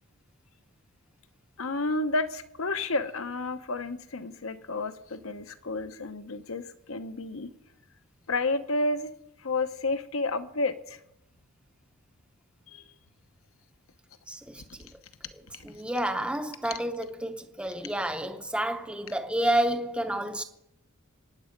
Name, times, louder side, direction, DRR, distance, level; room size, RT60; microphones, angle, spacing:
voice 1, 1.6-7.5 8.3-9.1 9.4-11.0 12.7-12.8 15.5-15.7, left 2 dB, 70° left, 1.0 m, -31 dB
voice 2, 14.3-14.6 15.6-20.4, right 1 dB, 5° right, 0.7 m, -29 dB
24.0 x 9.5 x 5.2 m
head